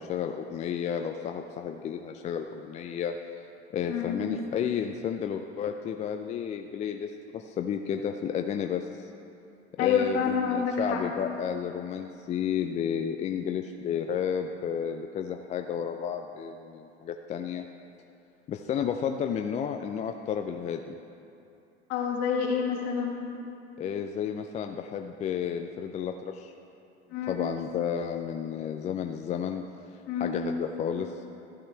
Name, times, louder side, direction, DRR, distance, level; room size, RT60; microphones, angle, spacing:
voice 1, 0.0-3.1 3.7-8.9 9.8-17.6 18.5-21.0 23.8-26.5 27.3-29.6 29.9-31.2, left 8 dB, 20° left, 5 dB, 0.4 m, -32 dB
voice 2, 3.9-4.2 9.8-11.0 21.9-23.3 27.1-27.4 30.1-30.4, left 6 dB, 45° left, -1 dB, 2.0 m, -28 dB
14.5 x 8.5 x 3.4 m, 2.7 s
hypercardioid pair, 85°, 34 cm